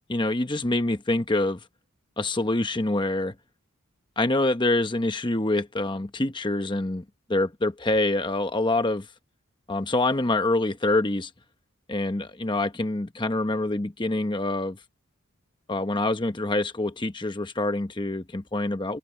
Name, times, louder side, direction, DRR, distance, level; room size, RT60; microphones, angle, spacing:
voice 1, 0.1-1.6 2.2-3.3 4.2-7.0 7.3-9.1 9.7-11.3 11.9-14.8 15.7-19.0, left 2 dB, 20° left, 0.9 m, -26 dB
head